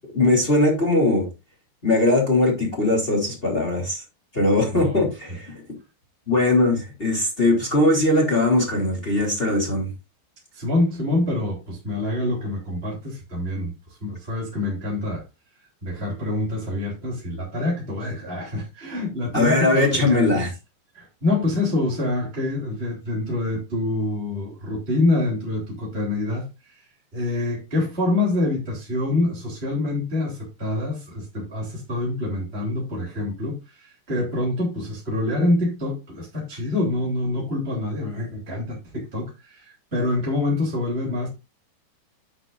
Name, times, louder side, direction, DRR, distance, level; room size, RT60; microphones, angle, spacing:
voice 1, 0.1-1.3 1.8-4.0 4.3-5.5 6.3-9.9 19.3-20.5, left 2 dB, 15° left, 2.3 m, -20 dB
voice 2, 4.7-5.1 10.5-13.7 14.0-15.2 15.8-20.4 20.9-26.8 27.1-41.3, left 2 dB, 15° right, 2.6 m, -26 dB
10.0 x 8.6 x 2.5 m
omnidirectional pair, 5.8 m